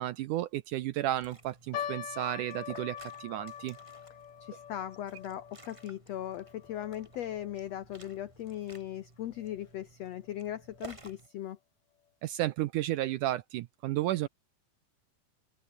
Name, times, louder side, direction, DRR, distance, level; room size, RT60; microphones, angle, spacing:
voice 1, 0.0-3.8 12.2-14.3, right 14 dB, 80° right, 1.9 m, -33 dB
Liquid, 0.9-11.3, right 2 dB, 20° right, 0.9 m, -55 dB
sound 1, 1.7-8.2 8.5-8.6 9.3-9.6 10.2-10.3 10.7-10.8, left 10 dB, 55° left, 2.7 m, -44 dB
voice 2, 4.4-11.6, left 12 dB, 80° left, 1.5 m, -39 dB
open air
omnidirectional pair, 4.3 m